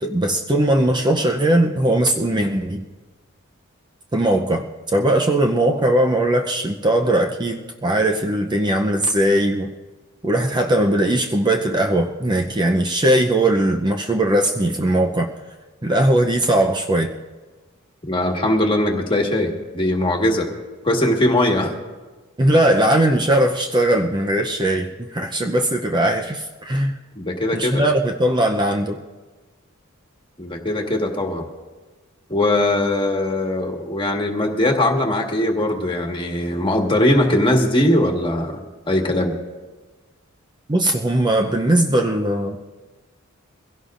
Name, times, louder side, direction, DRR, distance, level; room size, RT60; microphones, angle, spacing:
voice 1, 0.0-2.8 4.1-9.7 10.2-15.3 15.8-17.1 22.4-26.9 27.5-29.0 40.7-42.6, right 1 dB, 20° right, 2 dB, 0.6 m, -19 dB
voice 2, 18.1-20.5 20.8-21.7 27.1-27.8 30.4-31.4 32.3-38.6 38.9-39.3, left 1 dB, 25° left, 1 dB, 1.7 m, -20 dB
23.5 x 16.5 x 2.5 m, 1.3 s
head